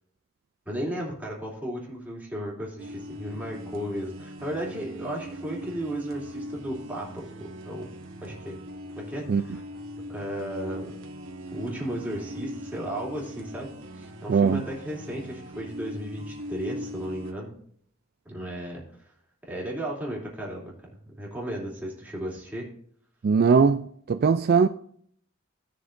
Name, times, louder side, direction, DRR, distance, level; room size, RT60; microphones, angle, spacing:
voice 1, 0.7-7.9 8.2-8.6 8.9-9.6 10.1-10.9 11.5-13.7 13.9-17.5 18.2-18.8 19.5-20.7 21.2-22.7, right 1 dB, 10° right, 2.9 m, -34 dB
sound 1, 2.8-17.3, equal, 80° right, 1.4 m, -40 dB
voice 2, 14.3-14.6 23.2-24.7, right 5 dB, 50° right, 0.3 m, -20 dB
17.0 x 6.5 x 2.6 m
head